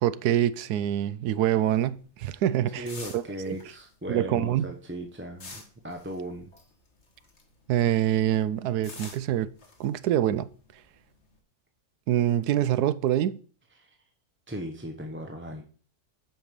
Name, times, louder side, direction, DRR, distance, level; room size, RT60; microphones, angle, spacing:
voice 1, 0.0-2.8 3.1-3.6 4.1-4.7 7.7-9.5 9.8-10.5 12.1-13.4, right 11 dB, 85° right, 1.1 m, -25 dB
sound 1, 1.6-7.7 8.0-11.4, left 3 dB, 45° left, 2.0 m, -48 dB
voice 2, 2.7-6.5 13.8-14.0 14.5-15.6, right 1 dB, 10° right, 0.8 m, -37 dB
8.2 x 5.6 x 6.7 m
omnidirectional pair, 1.6 m